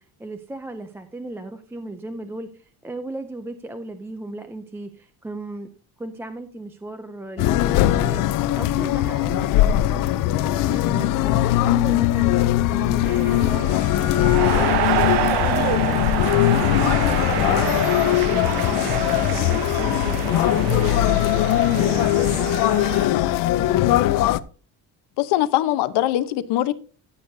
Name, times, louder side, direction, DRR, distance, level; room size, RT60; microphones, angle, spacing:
voice 1, 0.0-5.7 6.0-10.1 10.4-17.6 18.2-21.2 21.8-23.5, right 2 dB, 5° right, 0.3 m, -36 dB
sound 1, 7.4-24.4, left 14 dB, 55° left, 0.6 m, -20 dB
sound 2, 13.1-23.1, right 12 dB, 70° right, 1.0 m, -27 dB
voice 2, 25.2-26.7, left 14 dB, 75° left, 0.9 m, -21 dB
14.0 x 8.4 x 2.7 m
cardioid pair, 175°, 40 cm